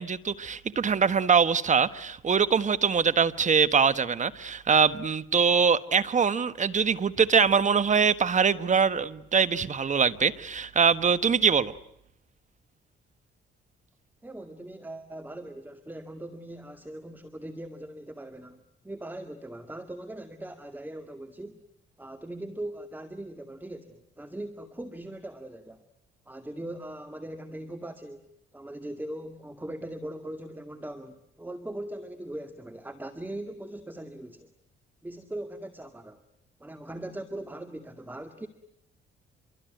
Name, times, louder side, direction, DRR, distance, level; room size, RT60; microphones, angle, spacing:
voice 1, 0.0-11.7, right 6 dB, 40° right, 1.5 m, -23 dB
voice 2, 14.2-21.6 22.0-25.8 26.3-34.5 35.0-36.2 36.6-38.5, right 1 dB, 10° right, 2.1 m, -40 dB
27.0 x 23.5 x 9.2 m
cardioid pair, 90°, 20 cm